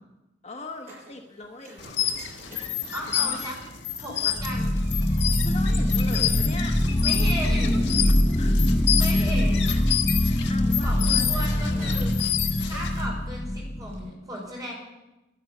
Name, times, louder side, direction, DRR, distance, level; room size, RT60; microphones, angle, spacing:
voice 1, 0.4-1.8 3.2-3.4 5.4-6.8 8.3-8.6 9.1-9.3 9.7-9.8 10.2-11.8, left 2 dB, 35° left, 3 dB, 1.1 m, -39 dB
sound 1, 0.7-14.0, right 1 dB, 35° right, 6.4 m, -50 dB
sound 2, 1.8-13.1, left 10 dB, 60° left, 1.4 m, -29 dB
voice 2, 2.9-3.5 4.0-4.8 7.0-8.0 8.7-9.8 10.8-12.2 12.6-14.7, equal, 20° right, -3 dB, 5.1 m, -35 dB
sound 3, 4.3-14.1, left 1 dB, 15° left, 0.4 m, -23 dB
11.5 x 10.5 x 8.4 m, 1.0 s
head